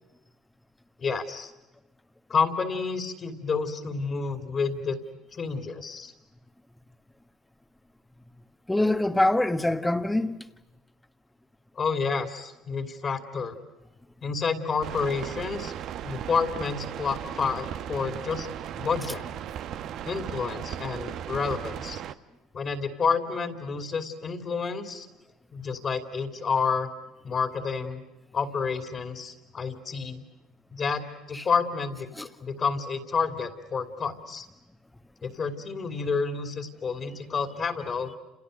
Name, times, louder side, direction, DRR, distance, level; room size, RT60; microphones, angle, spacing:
voice 1, 1.0-1.5 2.3-5.0 5.3-6.1 11.8-13.6 14.2-15.7 16.0-18.5 18.8-19.2 20.0-22.0 22.5-25.1 25.5-26.9 27.2-28.0 28.3-30.2 30.7-34.5 35.2-38.1, left 5 dB, 40° left, 2.9 m, -29 dB
voice 2, 8.7-10.5 31.3-31.4 32.1-32.3, left 1 dB, 10° left, 1.5 m, -24 dB
sound 1, 14.8-22.1, right 10 dB, 60° right, 1.0 m, -36 dB
29.5 x 28.0 x 6.7 m
supercardioid pair, 80°, 0 cm